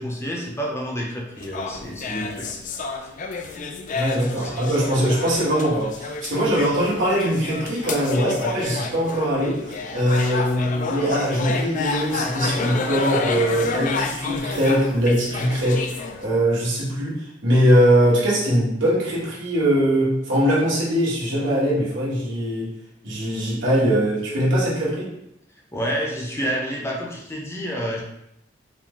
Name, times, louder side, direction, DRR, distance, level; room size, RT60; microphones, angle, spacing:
voice 1, 0.0-2.5 3.2-3.4 4.4-4.7 25.7-28.0, equal, 15° left, -2 dB, 0.7 m, -29 dB
sound 1, 1.4-16.3, left 4 dB, 40° left, 0.4 m, -30 dB
voice 2, 3.9-15.8 16.2-22.7 23.0-25.1, equal, 85° right, -6 dB, 1.5 m, -21 dB
4.8 x 2.2 x 3.7 m, 0.79 s
head